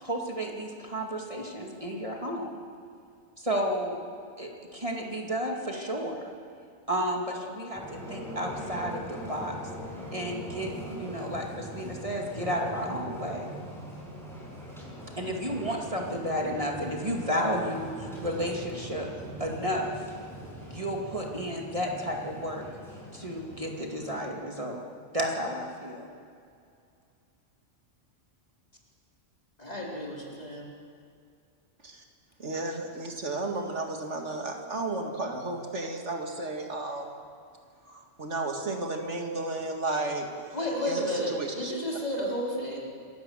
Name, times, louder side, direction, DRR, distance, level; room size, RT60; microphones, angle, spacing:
voice 1, 0.0-2.6 3.4-4.0 4.4-6.2 6.9-9.6 10.1-13.5 15.2-19.1 19.4-19.9 20.6-22.6 23.1-24.8 25.1-26.1, equal, 25° right, 0 dB, 2.4 m, -32 dB
sound 1, 7.7-24.3, equal, ahead, 6.1 m, -41 dB
voice 2, 29.6-30.7 40.5-42.8, equal, 30° left, -3 dB, 3.9 m, -32 dB
voice 3, 32.4-37.2 37.8-40.3 40.9-41.7, right 2 dB, 65° right, 3 dB, 2.3 m, -33 dB
27.5 x 15.5 x 7.3 m, 2.3 s
omnidirectional pair, 1.3 m